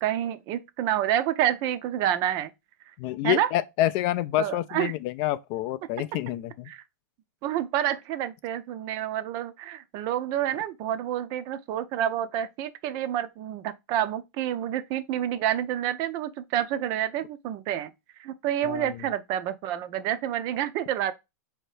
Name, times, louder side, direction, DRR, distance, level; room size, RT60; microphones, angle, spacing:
voice 1, 0.0-2.5 3.2-3.5 4.4-4.9 6.7-6.8 7.4-17.9 18.2-21.1, right 11 dB, 40° right, 0.5 m, -28 dB
voice 2, 3.0-6.7 18.6-18.9, left 14 dB, 45° left, 0.3 m, -28 dB
4.3 x 2.8 x 3.2 m
hypercardioid pair, 135°, 10 cm